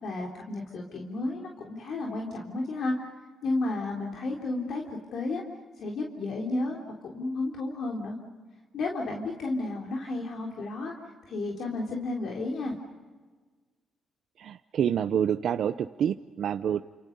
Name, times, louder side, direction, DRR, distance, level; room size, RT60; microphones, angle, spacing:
voice 1, 0.0-3.0 3.4-5.4 5.8-8.2 8.7-10.9 11.3-12.7, left 2 dB, 65° left, 0 dB, 3.7 m, -32 dB
voice 2, 14.4-16.8, right 9 dB, 65° right, 9 dB, 0.7 m, -27 dB
29.5 x 28.0 x 5.5 m, 1.4 s
cardioid pair, 90°, 0 cm